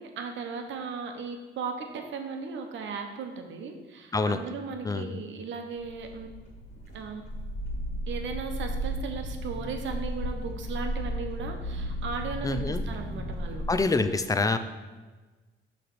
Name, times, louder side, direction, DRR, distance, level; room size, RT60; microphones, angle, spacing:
voice 1, 0.0-6.3 6.9-7.2 8.1-13.6, right 5 dB, 70° right, 5 dB, 0.9 m, -36 dB
sound 1, 5.8-13.8, equal, 35° left, 2.1 m, -34 dB
voice 2, 12.4-12.8 13.7-14.6, left 3 dB, 15° left, 9 dB, 0.4 m, -26 dB
6.6 x 3.3 x 6.0 m, 1.3 s
cardioid pair, 90°, 20 cm